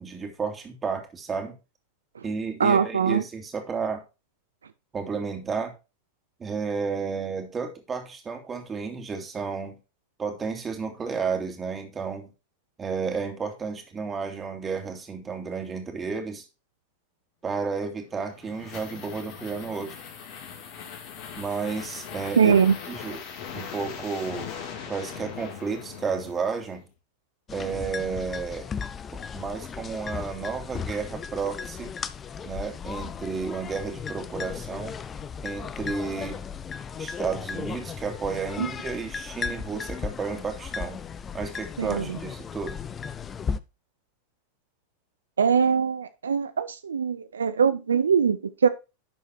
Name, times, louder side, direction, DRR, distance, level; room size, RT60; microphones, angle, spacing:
voice 1, 0.0-1.6 2.2-4.0 4.9-5.7 6.4-9.8 10.2-12.3 12.8-16.4 17.4-19.9 21.4-22.5 22.9-23.2 23.5-24.5 24.9-26.8 27.5-28.7 29.1-31.9 32.4-34.9 35.4-36.5 37.0-41.0 41.3-42.8, right 5 dB, 25° right, 2.6 m, -32 dB
voice 2, 2.6-3.2 22.4-22.7 38.6-38.7 41.8-42.2 45.4-48.7, right 6 dB, 90° right, 0.5 m, -22 dB
sound 1, 18.0-26.9, left 7 dB, 55° left, 3.0 m, -40 dB
sound 2, 27.5-43.6, left 6 dB, 25° left, 0.6 m, -36 dB
11.5 x 4.6 x 4.4 m
hypercardioid pair, 100°, 0 cm